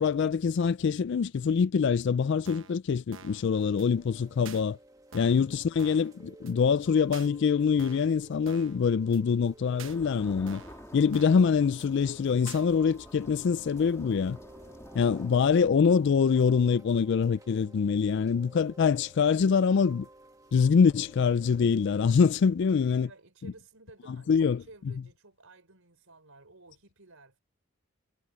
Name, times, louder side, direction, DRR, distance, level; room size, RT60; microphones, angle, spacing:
voice 1, 0.0-4.8 5.1-10.6 10.9-14.4 14.9-20.1 20.5-23.1 24.3-24.6, left 6 dB, 55° left, 0.3 m, -24 dB
sound 1, 2.5-2.8 3.1-3.4 3.8-3.9 4.5-4.6 5.1-5.5 5.8-6.1 6.5-6.6 7.1-7.3 7.8-8.1 8.5-8.8 9.1-9.2 9.8-10.0 10.5-10.8 11.1-11.5 11.8-11.9 12.5-12.6, right 6 dB, 65° right, 1.1 m, -47 dB
Chime / Rain, 3.6-22.0, right 2 dB, 15° right, 1.3 m, -54 dB
sound 2, 9.8-15.5, left 1 dB, 15° left, 2.8 m, -49 dB
voice 2, 14.6-15.0 22.6-27.4, right 3 dB, 80° right, 4.2 m, -55 dB
head